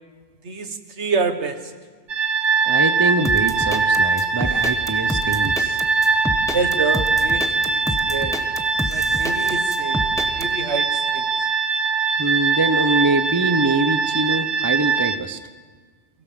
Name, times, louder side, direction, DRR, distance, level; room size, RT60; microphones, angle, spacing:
voice 1, 0.4-1.6 6.5-7.8 8.1-8.4 8.9-10.0 10.3-10.9 11.1-11.2, right 4 dB, 70° right, 9 dB, 1.6 m, -26 dB
sound 1, 2.1-15.2, right 4 dB, 85° right, 1.4 m, -21 dB
voice 2, 2.6-5.8 12.2-15.4, right 2 dB, 20° right, 11 dB, 0.8 m, -23 dB
sound 2, 3.2-10.5, left 1 dB, 5° left, 1.1 m, -28 dB
23.5 x 17.0 x 7.5 m, 1.5 s
omnidirectional pair, 1.2 m